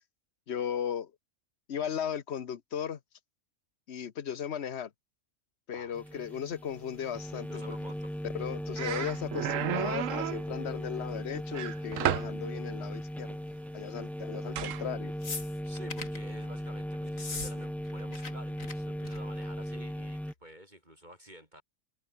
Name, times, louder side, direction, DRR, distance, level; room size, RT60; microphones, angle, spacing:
voice 1, 0.5-1.1 1.7-3.0 3.9-4.9 5.7-7.8 8.3-13.4 13.7-15.1, left 8 dB, 55° left, 1.3 m, -36 dB
voice 2, 5.7-6.4 7.5-8.1 15.6-21.6, equal, 35° right, 8.2 m, -50 dB
sound 1, 5.9-20.3, equal, ahead, 0.6 m, -38 dB
sound 2, 8.3-8.4 8.8-10.5 11.5-12.4 14.5-14.8, right 11 dB, 75° right, 1.1 m, -32 dB
sound 3, 15.2-16.2 17.1-17.5 17.8-18.3 18.6-18.7 19.0-19.4 20.3-20.4, left 4 dB, 80° left, 2.9 m, -39 dB
omnidirectional pair, 1.4 m